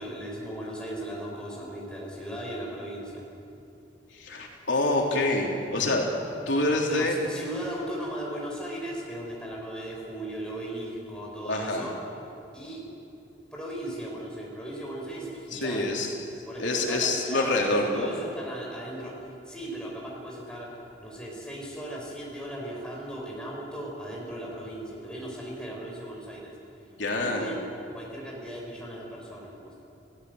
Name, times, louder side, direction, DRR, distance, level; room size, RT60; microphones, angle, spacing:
voice 1, 0.0-3.2 6.8-11.9 12.5-12.9 13.5-16.1 16.5-26.6 27.1-29.8, right 1 dB, 5° left, -3 dB, 5.2 m, -37 dB
voice 2, 4.1-6.1 6.5-7.2 11.4-11.9 15.5-16.1 16.6-18.1 27.0-27.5, left 2 dB, 90° left, 0 dB, 3.5 m, -26 dB
29.0 x 16.5 x 8.1 m, 2.8 s
head